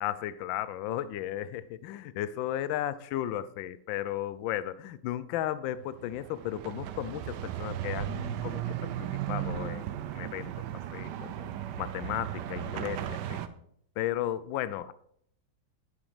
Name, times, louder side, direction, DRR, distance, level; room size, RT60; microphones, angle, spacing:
voice 1, 0.0-9.8 10.1-10.5 10.9-11.5 11.8-13.4 14.0-14.9, left 12 dB, 80° left, 16 dB, 1.3 m, -34 dB
sound 1, 5.8-13.5, right 11 dB, 70° right, 1.1 m, -36 dB
8.9 x 7.2 x 5.0 m, 0.68 s
omnidirectional pair, 2.2 m